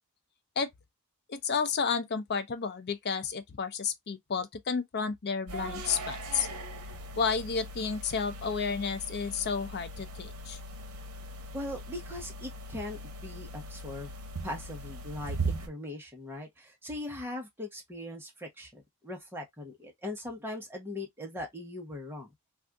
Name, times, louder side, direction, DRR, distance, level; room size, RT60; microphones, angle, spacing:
voice 1, 1.3-6.5 7.2-10.6, left 5 dB, 45° left, 0.5 m, -31 dB
sound 1, 5.5-15.7, right 2 dB, 80° right, 0.8 m, -39 dB
voice 2, 11.5-14.1 14.4-22.3, left 1 dB, 10° right, 0.9 m, -40 dB
2.6 x 2.4 x 3.4 m
head